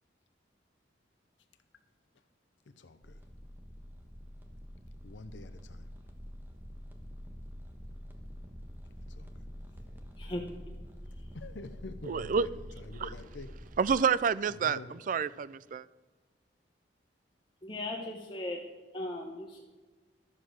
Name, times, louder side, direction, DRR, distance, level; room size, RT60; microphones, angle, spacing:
voice 1, 2.8-3.2 5.0-5.9 9.1-9.3 11.3-12.5 12.8-13.5 14.5-14.9, left 2 dB, 80° left, 0.7 m, -46 dB
sound 1, 3.0-14.0, equal, 10° right, 1.2 m, -46 dB
voice 2, 10.2-10.5 17.6-18.6 18.9-19.6, left 1 dB, 25° left, 1.0 m, -37 dB
voice 3, 12.0-12.5 13.0-13.1 13.8-15.9, right 6 dB, 45° right, 0.3 m, -29 dB
12.0 x 7.6 x 6.4 m
head